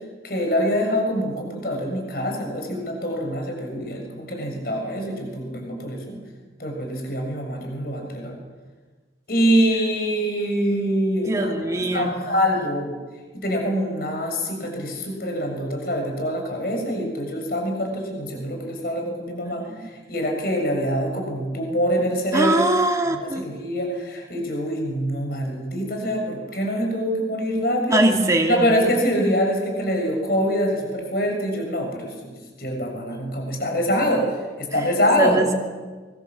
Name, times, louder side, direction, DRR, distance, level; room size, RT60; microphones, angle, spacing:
voice 1, 0.2-6.2 6.6-8.3 9.3-13.0 13.3-22.6 23.1-28.0 28.5-34.3 34.6-35.4, equal, 55° left, 2 dB, 6.7 m, -25 dB
voice 2, 11.3-12.1 19.7-19.9 22.3-23.5 27.9-28.9 35.2-35.5, right 1 dB, 20° right, 1 dB, 2.5 m, -22 dB
24.5 x 23.5 x 7.5 m, 1.3 s
head